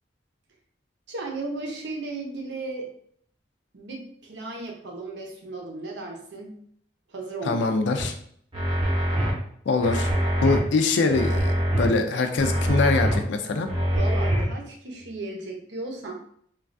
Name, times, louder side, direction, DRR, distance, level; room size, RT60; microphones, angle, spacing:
voice 1, 1.1-2.9 3.7-6.6 7.1-7.6 13.9-16.1, right 2 dB, 70° right, 1 dB, 0.7 m, -35 dB
voice 2, 7.4-8.1 9.7-10.1 10.4-13.7, left 3 dB, 75° left, 6 dB, 0.4 m, -23 dB
sound 1, 8.0-8.1 8.5-9.3 9.8-10.6 11.1-11.9 12.4-13.2 13.7-14.5, equal, 25° right, 0.7 m, -24 dB
3.1 x 2.3 x 2.5 m, 0.63 s
head